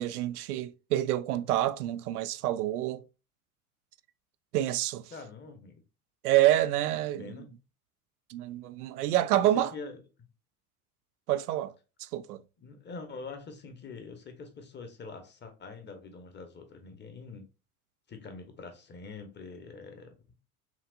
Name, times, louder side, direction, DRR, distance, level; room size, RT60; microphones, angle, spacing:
voice 1, 0.0-3.0 4.5-5.0 6.2-7.4 8.3-9.7 11.3-11.7 12.0-12.4, right 13 dB, 80° right, 0.5 m, -27 dB
voice 2, 5.1-5.8 7.2-7.5 9.3-10.0 12.6-17.5 18.1-20.1, left 4 dB, 25° left, 1.0 m, -44 dB
5.9 x 2.4 x 2.4 m
hypercardioid pair, 80°, 45 cm